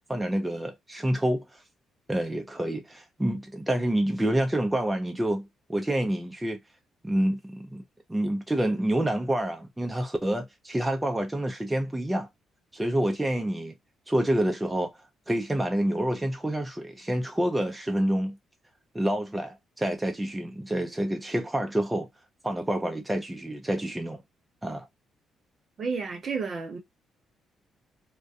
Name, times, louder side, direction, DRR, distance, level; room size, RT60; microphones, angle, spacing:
voice 1, 0.1-1.6 2.1-6.6 7.0-7.8 8.1-12.3 12.7-13.7 14.1-14.9 15.3-18.4 18.9-22.1 22.4-24.2 24.6-24.9, right 1 dB, 10° right, 0.5 m, -28 dB
voice 2, 25.8-26.8, right 5 dB, 45° right, 0.8 m, -31 dB
2.3 x 2.1 x 2.6 m
cardioid pair, 90°, 0 cm